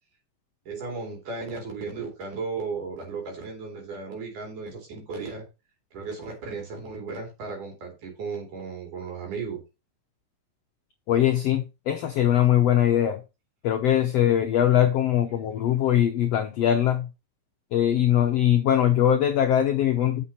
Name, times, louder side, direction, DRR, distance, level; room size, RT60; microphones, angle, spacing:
voice 1, 0.7-5.5 5.9-9.6 20.0-20.1, right 4 dB, 65° right, 4.3 m, -35 dB
voice 2, 11.1-13.2 13.6-17.1 17.7-20.2, left 10 dB, 70° left, 1.5 m, -21 dB
7.4 x 7.2 x 4.2 m
omnidirectional pair, 3.9 m